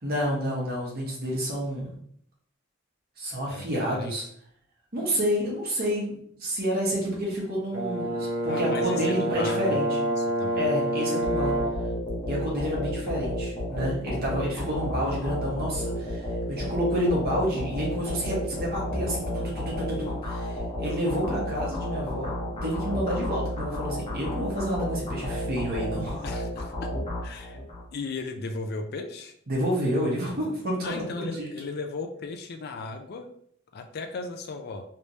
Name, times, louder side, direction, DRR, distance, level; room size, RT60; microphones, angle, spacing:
voice 1, 0.0-1.9 3.2-4.2 4.9-9.9 10.6-11.5 12.3-26.3 29.5-31.5, equal, 50° right, -3 dB, 1.2 m, -29 dB
voice 2, 3.5-4.2 8.5-10.7 26.2-26.9 27.2-27.6 27.9-29.3 30.8-33.3 33.7-34.8, left 3 dB, 55° left, 6 dB, 0.4 m, -36 dB
Brass instrument, 7.7-11.9, right 1 dB, 80° right, 1.1 m, -27 dB
sound 1, 11.2-27.8, equal, 30° left, 0.9 m, -32 dB
3.3 x 3.1 x 2.7 m, 0.65 s
head